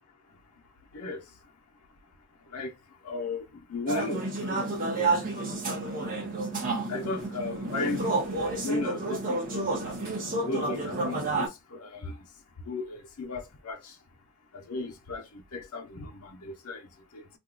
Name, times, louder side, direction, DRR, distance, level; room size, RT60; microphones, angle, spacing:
voice 1, 0.9-1.2 2.5-2.7 3.0-6.3 6.9-9.9 10.5-12.2 12.7-14.0 14.5-17.3, left 3 dB, 85° left, 0.8 m, -36 dB
sound 1, 3.9-11.5, right 2 dB, 40° right, 0.9 m, -30 dB
2.6 x 2.3 x 3.8 m
head